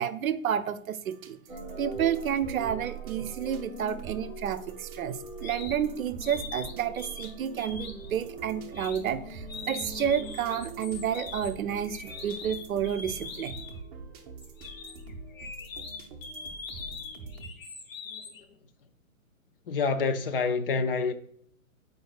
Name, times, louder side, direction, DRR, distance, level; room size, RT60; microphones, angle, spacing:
voice 1, 0.0-1.4 1.8-13.5, right 9 dB, 75° right, 0.6 m, -30 dB
sound 1, 1.1-17.5, right 4 dB, 25° right, 0.7 m, -46 dB
sound 2, 1.5-17.4, right 4 dB, 5° right, 1.9 m, -44 dB
sound 3, 5.4-5.8 6.2-7.3 7.6-8.1 8.7-9.0 9.5-13.8 14.4-18.4, left 5 dB, 65° left, 1.5 m, -42 dB
voice 2, 18.1-18.5 19.7-21.1, left 4 dB, 40° left, 0.5 m, -28 dB
7.9 x 5.0 x 2.3 m
hypercardioid pair, 135°, 42 cm